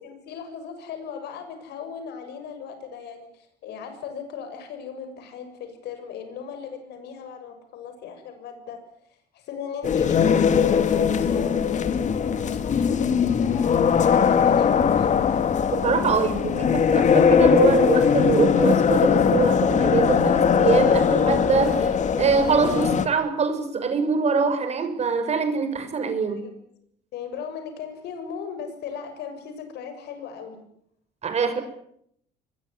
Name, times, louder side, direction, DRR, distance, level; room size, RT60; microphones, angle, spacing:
voice 1, 0.0-8.8 9.3-15.6 26.3-26.5 27.1-30.6, left 7 dB, 75° left, 8 dB, 7.1 m, -37 dB
sound 1, 9.8-23.1, left 7 dB, 45° left, 2.2 m, -20 dB
voice 2, 15.8-26.4 31.2-31.6, right 5 dB, 40° right, 7 dB, 6.6 m, -24 dB
26.0 x 22.0 x 10.0 m, 0.73 s
cardioid pair, 110°, 17 cm